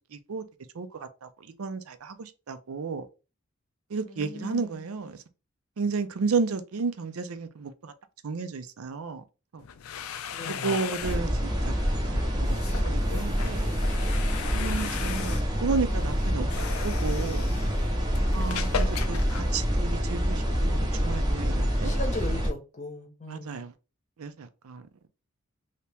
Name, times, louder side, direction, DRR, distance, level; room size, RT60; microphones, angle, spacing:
voice 1, 0.1-0.4 0.8-1.3 1.6-3.1 3.9-5.2 5.8-7.9 8.2-9.2 9.5-9.6 10.6-11.7 12.8-13.7 14.5-17.5 18.3-21.9 23.3-23.7 24.2-24.9, right 4 dB, 85° right, 0.5 m, -32 dB
voice 2, 4.1-4.9 10.3-10.8 21.8-23.7, left 1 dB, 35° left, 0.8 m, -38 dB
sound 1, 9.6-20.2, left 7 dB, 80° left, 0.4 m, -38 dB
sound 2, 11.0-22.5, equal, 20° right, 0.6 m, -27 dB
2.8 x 2.8 x 3.3 m
head